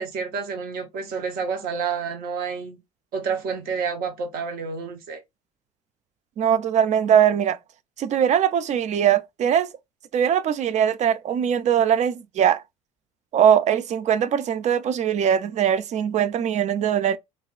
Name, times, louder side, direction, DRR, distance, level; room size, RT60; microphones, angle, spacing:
voice 1, 0.0-2.8 3.1-5.2, right 5 dB, 55° right, 0.9 m, -29 dB
voice 2, 6.4-7.6 8.0-9.7 10.1-12.6 13.3-17.2, right 9 dB, 40° right, 0.4 m, -21 dB
2.5 x 2.3 x 3.6 m
hypercardioid pair, 60°, 18 cm